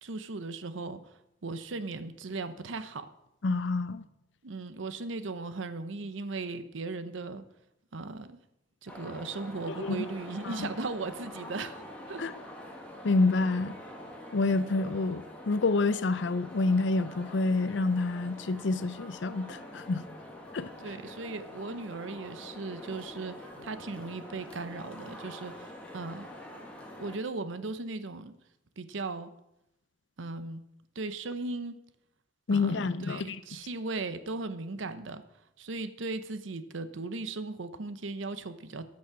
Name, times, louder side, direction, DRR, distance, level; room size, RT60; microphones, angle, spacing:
voice 1, 0.0-1.1 1.4-3.1 4.4-7.4 7.9-8.4 8.8-12.2 20.8-26.3 27.0-28.4 28.8-29.3 30.2-30.6 31.0-31.7 32.5-35.2 35.6-38.9, right 3 dB, 85° right, 0.8 m, -37 dB
voice 2, 3.4-4.0 9.8-10.1 10.4-10.7 12.2-12.3 13.0-13.8 14.3-20.0 20.5-20.7 32.5-33.4, left 3 dB, 70° left, 0.5 m, -28 dB
sound 1, 8.9-27.2, left 1 dB, 5° left, 1.7 m, -46 dB
13.0 x 6.2 x 5.7 m
head